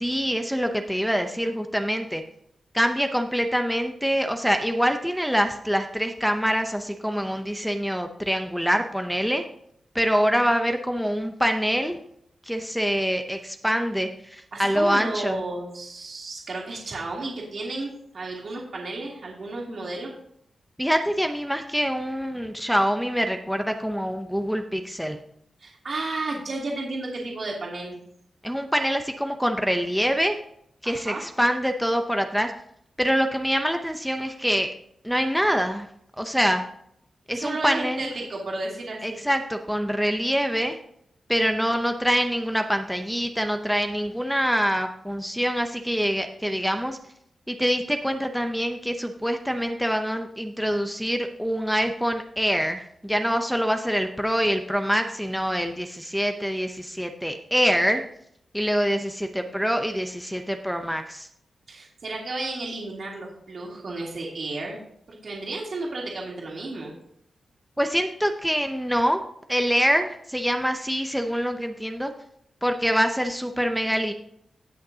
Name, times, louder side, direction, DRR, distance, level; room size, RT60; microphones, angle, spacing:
voice 1, 0.0-2.2 2.7-9.4 9.9-12.0 12.4-15.4 20.8-25.2 28.4-30.4 30.8-32.5 33.0-34.7 35.0-35.9 36.2-36.6 37.3-38.1 39.0-40.8 41.3-47.0 47.5-58.0 58.5-61.3 67.8-69.2 69.5-72.1 72.6-74.1, equal, ahead, 5 dB, 0.6 m, -25 dB
voice 2, 14.5-20.1 25.6-28.0 30.8-31.2 37.3-39.2 61.7-64.8 65.1-66.9, right 2 dB, 50° right, -2 dB, 2.6 m, -33 dB
18.5 x 6.4 x 2.8 m, 0.71 s
wide cardioid pair, 150°, 0 cm